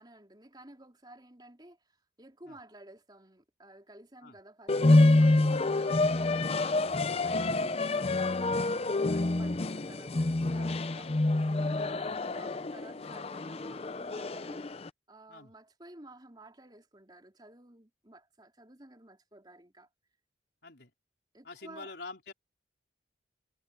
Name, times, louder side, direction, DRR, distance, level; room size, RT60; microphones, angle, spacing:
voice 1, 0.0-6.9 7.2-10.2 10.5-11.3 11.6-14.7 15.1-19.9 21.3-21.9, right 1 dB, 25° right, 3.8 m, -54 dB
sound 1, 4.7-14.9, left 2 dB, 35° left, 0.5 m, -27 dB
voice 2, 21.4-22.3, left 3 dB, 65° left, 4.5 m, -46 dB
head